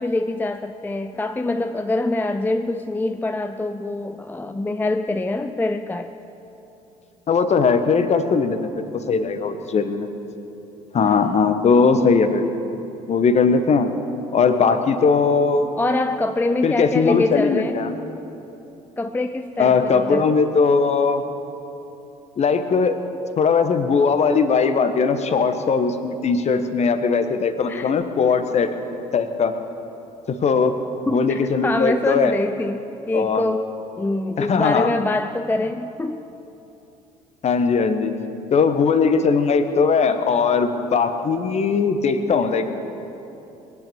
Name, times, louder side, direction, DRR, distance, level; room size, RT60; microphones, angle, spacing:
voice 1, 0.0-6.1 11.0-11.3 15.8-17.8 19.0-20.3 27.7-28.0 31.1-33.7 34.0-36.3, left 2 dB, 10° left, 9 dB, 0.5 m, -24 dB
voice 2, 7.3-10.1 10.9-12.5 13.1-13.9 14.3-15.7 16.6-17.9 19.6-21.2 22.4-23.0 23.4-28.7 29.1-29.5 30.3-30.7 31.1-32.3 33.1-33.4 34.4-34.9 37.4-38.1 38.5-42.7, left 5 dB, 35° left, 9 dB, 1.2 m, -19 dB
21.5 x 9.0 x 7.0 m, 3.0 s
figure-of-eight pair, 55°, 19 cm